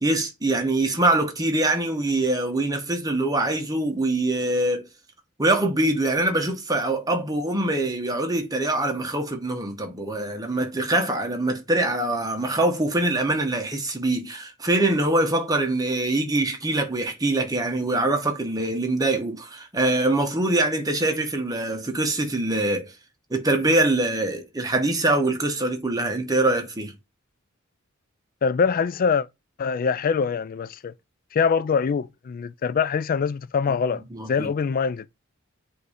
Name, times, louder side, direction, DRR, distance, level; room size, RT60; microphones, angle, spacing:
voice 1, 0.0-4.8 5.4-22.9 23.3-26.9 34.1-34.5, right 2 dB, 20° right, 1.0 m, -24 dB
voice 2, 28.4-29.3 29.6-30.9 31.3-35.1, left 6 dB, 40° left, 0.3 m, -24 dB
7.9 x 2.7 x 4.9 m
head